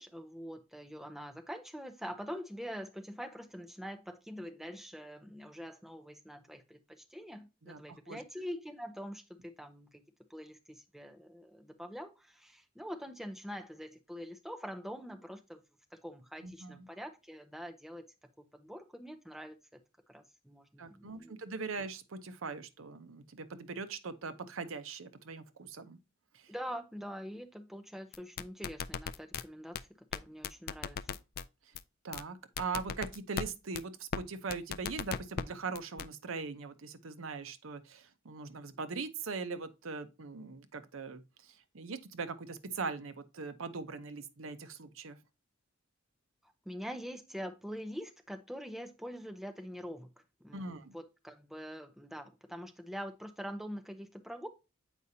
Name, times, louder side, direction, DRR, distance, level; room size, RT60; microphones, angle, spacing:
voice 1, 0.0-10.0 10.3-15.6 16.0-18.0 18.4-19.6 20.1-21.4 26.5-31.0 46.7-50.1 50.4-54.5, equal, ahead, 0.7 m, -44 dB
voice 2, 7.6-8.2 16.4-16.9 20.8-26.0 26.3-26.5 32.0-45.2 50.5-50.9, right 4 dB, 70° right, 0.7 m, -41 dB
sound 1, 28.1-29.4 29.8-29.9 30.1-30.2 30.4-31.4 31.8-31.9 32.1-32.2 32.6-33.5 33.8-33.9 34.1-34.2 34.5-35.4 35.8-36.1, left 7 dB, 45° left, 0.4 m, -36 dB
8.0 x 4.9 x 2.7 m
head